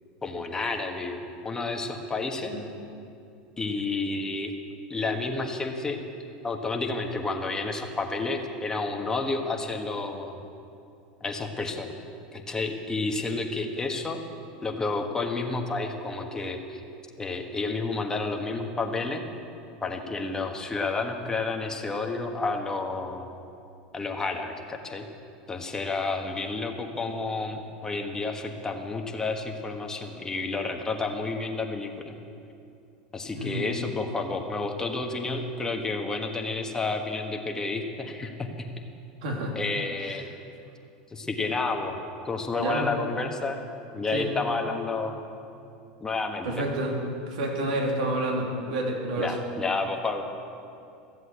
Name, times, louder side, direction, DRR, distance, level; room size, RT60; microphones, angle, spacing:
voice 1, 0.2-2.5 3.6-4.5 4.9-6.0 6.4-10.4 11.2-11.9 12.3-14.2 14.6-16.8 17.2-19.3 19.8-23.3 23.9-25.1 25.5-32.1 33.1-38.7 39.5-40.3 41.1-42.0 42.2-43.6 43.9-45.2 46.0-46.6 49.2-50.2, left 3 dB, 15° left, 3 dB, 1.4 m, -30 dB
voice 2, 33.3-33.7 39.2-39.6 42.6-42.9 44.1-44.3 46.4-47.0 47.3-49.3, right 1 dB, 75° right, 0 dB, 2.8 m, -29 dB
13.5 x 8.0 x 8.2 m, 2.6 s
supercardioid pair, 110°, 4 cm